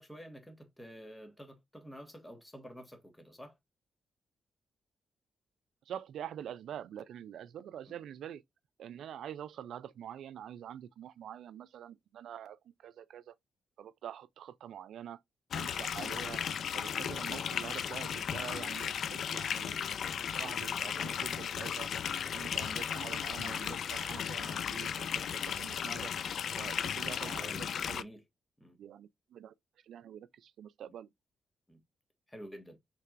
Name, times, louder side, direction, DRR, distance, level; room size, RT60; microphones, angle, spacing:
voice 1, 0.0-3.6 7.9-8.0 27.2-27.6 27.9-28.2 28.6-28.8 31.7-31.8 32.3-32.8, equal, 10° left, 1.4 m, -49 dB
voice 2, 5.9-8.4 8.8-13.4 13.8-15.2 15.5-16.4 16.7-21.9 22.2-26.1 26.6-28.0 28.8-29.5 29.8-31.1, right 10 dB, 80° right, 0.3 m, -46 dB
sound 1, 15.5-28.0, left 8 dB, 65° left, 0.3 m, -35 dB
5.8 x 3.4 x 2.4 m
cardioid pair, 90°, 0 cm